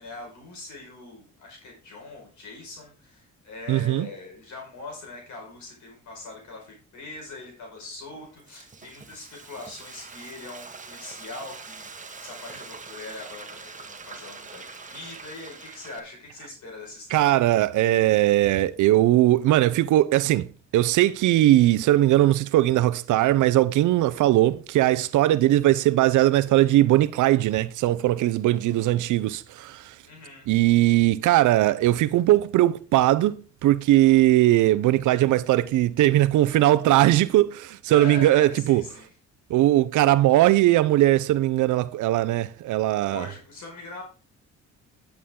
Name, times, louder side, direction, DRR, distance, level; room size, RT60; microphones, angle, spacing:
voice 1, 0.0-17.3 30.0-30.5 37.9-39.1 43.1-44.0, left 3 dB, 70° left, 5.0 m, -41 dB
voice 2, 3.7-4.1 17.1-20.5 20.7-29.9 30.5-38.8 39.5-43.3, right 15 dB, 80° right, 0.6 m, -20 dB
Frying (food), 8.1-16.0, right 4 dB, 25° right, 1.3 m, -43 dB
11.0 x 7.2 x 3.7 m
cardioid pair, 90°, 30 cm